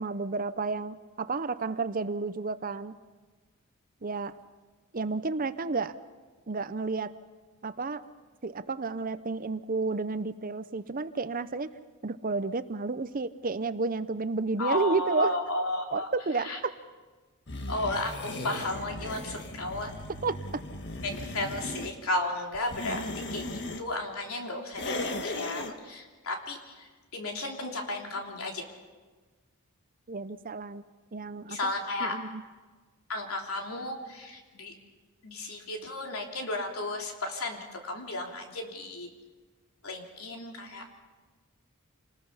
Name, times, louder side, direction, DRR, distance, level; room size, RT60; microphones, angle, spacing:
voice 1, 0.0-2.9 4.0-4.4 4.9-5.9 6.5-7.1 7.6-8.0 8.4-11.7 12.0-15.3 15.9-16.7 20.2-20.6 30.1-30.8 31.1-31.6 32.0-32.4, right 3 dB, 40° right, 13 dB, 0.7 m, -31 dB
voice 2, 14.6-16.1 16.4-16.6 17.7-19.9 21.0-23.0 23.3-28.7 31.5-32.2 33.1-34.7 35.2-39.1 39.8-41.0, left 2 dB, 80° left, 1 dB, 3.3 m, -34 dB
sound 1, 17.5-21.9 22.5-23.8 24.7-25.7, left 2 dB, 55° left, 1.6 m, -37 dB
28.0 x 20.0 x 5.7 m, 1.4 s
head